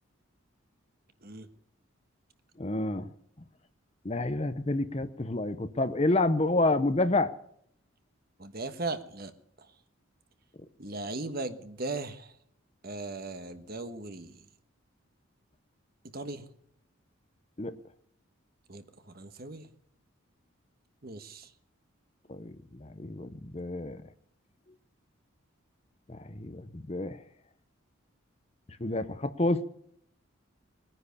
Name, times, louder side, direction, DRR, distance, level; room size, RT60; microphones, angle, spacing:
voice 1, 2.6-3.1 4.0-7.3 17.6-17.7 22.3-24.0 26.1-27.2 28.8-29.6, left 2 dB, 30° left, 12 dB, 0.8 m, -29 dB
voice 2, 8.4-9.3 10.8-12.3 12.8-14.4 16.1-16.4 18.7-19.7 21.0-21.5, right 2 dB, 45° right, 9 dB, 1.3 m, -38 dB
20.5 x 9.9 x 6.9 m, 0.68 s
head